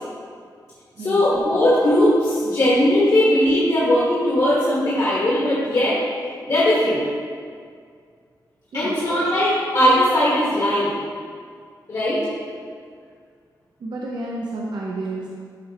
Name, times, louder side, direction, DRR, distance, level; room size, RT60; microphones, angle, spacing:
voice 1, 1.0-6.0 6.5-7.0 8.7-11.0 11.9-12.2, left 1 dB, 50° left, -9 dB, 1.5 m, -19 dB
voice 2, 13.8-15.3, right 2 dB, 75° right, -4 dB, 0.8 m, -30 dB
11.5 x 4.4 x 2.9 m, 2.1 s
wide cardioid pair, 155°, 7 cm